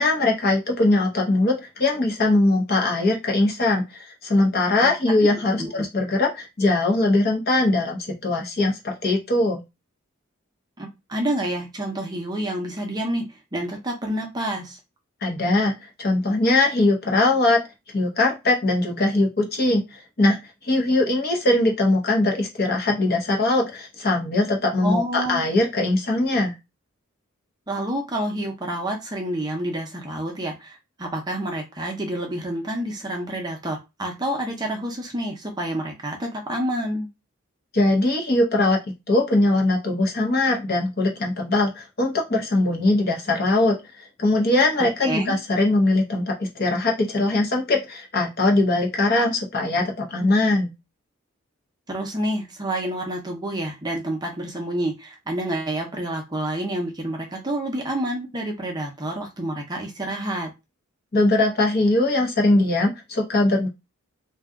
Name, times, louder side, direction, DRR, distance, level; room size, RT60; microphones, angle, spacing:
voice 1, 0.0-9.6 15.2-15.7 16.0-17.6 17.9-20.4 20.6-26.5 37.7-38.8 39.1-43.8 44.2-50.7 61.1-63.7, left 2 dB, 45° left, 0.8 m, -21 dB
voice 2, 4.8-5.3 5.6-5.7 10.8-14.8 24.8-25.4 27.7-37.1 45.0-45.4 51.9-60.5, right 1 dB, 20° right, 0.6 m, -28 dB
2.7 x 2.3 x 3.5 m
head